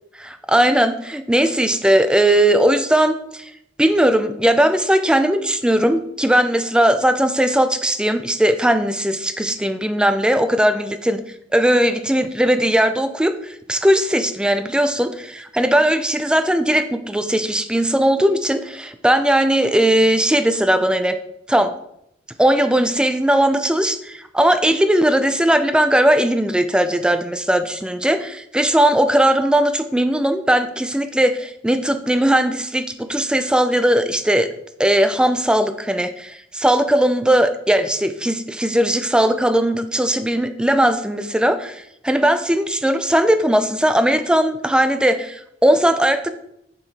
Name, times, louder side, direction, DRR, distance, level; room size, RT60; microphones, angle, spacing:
voice 1, 0.2-3.5 3.8-11.2 11.5-21.2 21.5-21.7 22.4-34.5 34.8-46.3, right 1 dB, 5° right, 9 dB, 0.4 m, -18 dB
6.9 x 4.6 x 3.3 m, 0.77 s
head